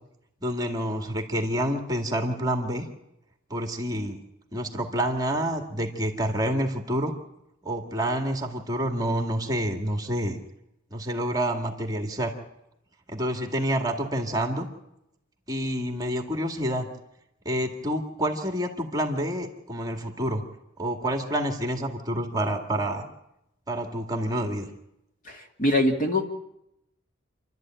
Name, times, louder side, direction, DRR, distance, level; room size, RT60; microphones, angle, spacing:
voice 1, 0.4-2.9 3.5-4.2 4.5-7.1 7.6-10.4 10.9-12.3 13.1-14.7 15.5-16.9 17.5-20.4 20.8-23.0 23.7-24.7, right 1 dB, 20° right, 4 dB, 2.1 m, -28 dB
voice 2, 25.3-26.3, left 1 dB, 45° left, 3 dB, 2.3 m, -24 dB
28.0 x 12.5 x 8.9 m, 0.86 s
head